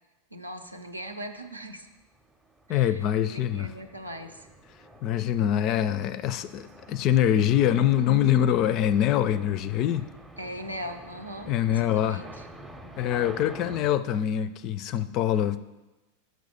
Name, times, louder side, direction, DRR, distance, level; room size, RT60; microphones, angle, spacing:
voice 1, 0.3-1.9 2.7-4.5 10.4-12.5, equal, 85° right, 0.7 m, -40 dB
sound 1, 0.9-1.1 1.6-13.9, right 1 dB, 10° right, 0.6 m, -48 dB
voice 2, 2.7-3.7 5.0-10.1 11.5-12.2 13.0-15.6, left 10 dB, 40° left, 0.4 m, -24 dB
6.2 x 5.5 x 6.8 m
figure-of-eight pair, 90°, 0 cm